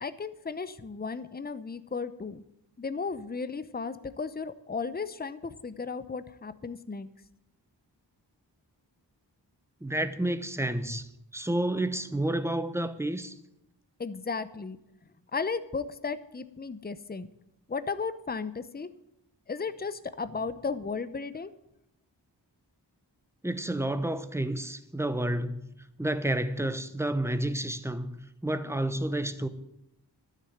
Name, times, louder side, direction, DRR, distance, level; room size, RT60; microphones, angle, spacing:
voice 1, 0.0-2.4 2.8-7.1 14.0-14.8 15.3-17.3 17.7-18.9 19.5-21.5, left 4 dB, 25° left, 0.7 m, -35 dB
voice 2, 9.8-11.1 11.3-13.3 23.4-29.5, right 1 dB, 5° right, 0.9 m, -30 dB
12.5 x 6.7 x 9.3 m
wide cardioid pair, 75°, 42 cm